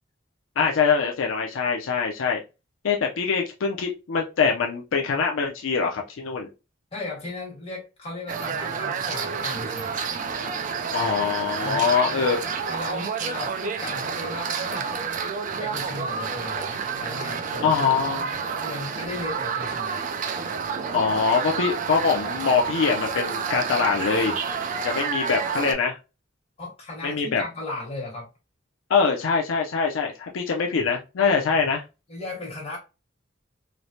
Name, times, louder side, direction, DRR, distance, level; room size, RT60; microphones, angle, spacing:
voice 1, 0.6-2.4 2.8-6.5 10.9-12.4 17.6-18.4 20.9-24.4 24.8-26.0 27.0-27.4 28.9-31.8, left 5 dB, 75° left, 0.4 m, -23 dB
voice 2, 6.9-10.0 11.6-15.3 15.6-17.8 18.1-20.0 26.6-28.3 32.1-32.8, left 2 dB, 30° left, 1.3 m, -36 dB
sound 1, 8.3-25.7, right 6 dB, 40° right, 0.3 m, -29 dB
3.1 x 2.0 x 2.6 m
head